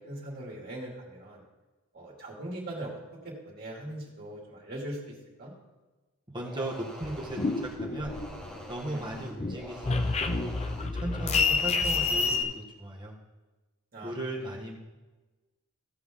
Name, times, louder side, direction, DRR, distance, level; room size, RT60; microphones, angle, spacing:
voice 1, 0.1-1.4 1.9-3.0 3.2-5.1 5.4-5.5 8.9-9.0 13.9-14.1, right 1 dB, 45° right, -3 dB, 2.6 m, -40 dB
voice 2, 6.3-7.4 7.8-8.2 8.7-10.5 11.0-13.1 14.0-14.8, right 1 dB, 20° right, -2 dB, 1.6 m, -37 dB
sound 1, 6.4-12.5, equal, 5° left, 1.6 m, -45 dB
sound 2, 7.0-8.7 9.0-12.4, left 4 dB, 30° left, 0.6 m, -28 dB
15.5 x 5.9 x 3.7 m, 1.2 s
head